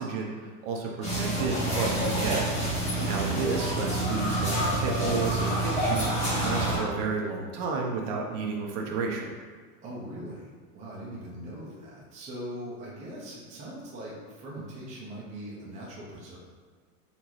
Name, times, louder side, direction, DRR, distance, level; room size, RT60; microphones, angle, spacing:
voice 1, 0.0-2.5 3.1-9.3, right 4 dB, 50° right, 0 dB, 0.7 m, -32 dB
sound 1, 1.0-6.8, right 1 dB, 15° left, 1.1 m, -27 dB
voice 2, 3.0-3.3 9.8-16.4, right 1 dB, 15° right, -5 dB, 0.6 m, -41 dB
4.1 x 3.5 x 3.0 m, 1.5 s
supercardioid pair, 145°, 46 cm